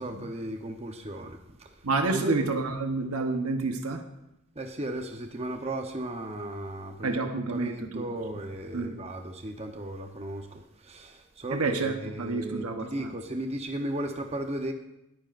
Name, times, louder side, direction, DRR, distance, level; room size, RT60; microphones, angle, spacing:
voice 1, 0.0-1.7 2.1-2.3 4.6-14.7, right 1 dB, 30° right, 4 dB, 0.8 m, -35 dB
voice 2, 1.8-4.0 7.0-8.0 8.7-8.9 11.5-13.1, right 3 dB, 85° right, 5 dB, 1.0 m, -29 dB
19.5 x 9.1 x 2.5 m, 0.87 s
head